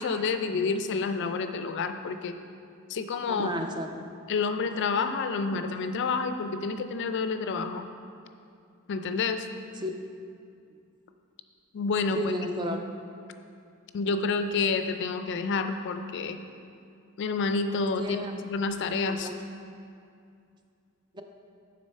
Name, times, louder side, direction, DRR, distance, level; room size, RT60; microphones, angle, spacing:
voice 1, 0.0-2.4 2.9-3.5 4.3-7.9 8.9-9.5 11.7-12.4 12.7-12.8 13.9-16.4 17.2-19.3, left 4 dB, 55° left, 8 dB, 0.3 m, -29 dB
voice 2, 3.3-4.1 5.5-5.6 9.8-9.9 12.1-12.8 18.0-18.3 19.2-19.4 21.1-21.2, equal, 20° right, 4 dB, 0.4 m, -32 dB
6.4 x 4.0 x 5.3 m, 2.4 s
head